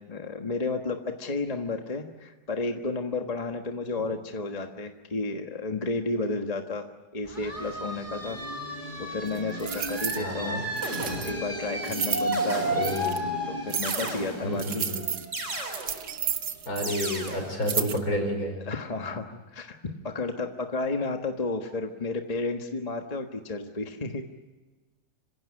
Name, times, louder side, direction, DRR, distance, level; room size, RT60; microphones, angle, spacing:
voice 1, 0.0-6.9 7.1-8.4 9.0-10.6 11.2-12.6 13.5-14.9 17.7-17.8 18.7-24.2, left 3 dB, 25° left, 4 dB, 1.4 m, -32 dB
sound 1, 7.3-16.7, right 1 dB, 30° right, 3.1 m, -33 dB
sound 2, 9.3-10.2 10.8-11.3 11.8-12.3 12.8-13.2 13.7-14.2 14.6-17.0 17.3-17.4 17.6-18.0, right 8 dB, 85° right, 1.8 m, -32 dB
sound 3, 9.8-10.0 10.8-11.6 12.3-13.1 13.8-14.7 15.3-16.1 16.8-17.6, right 1 dB, 50° right, 4.1 m, -35 dB
voice 2, 10.2-10.6 12.7-13.2 14.4-15.0 16.7-18.6, left 1 dB, 65° left, 4 dB, 5.6 m, -30 dB
26.5 x 16.5 x 9.7 m, 1.2 s
omnidirectional pair, 1.7 m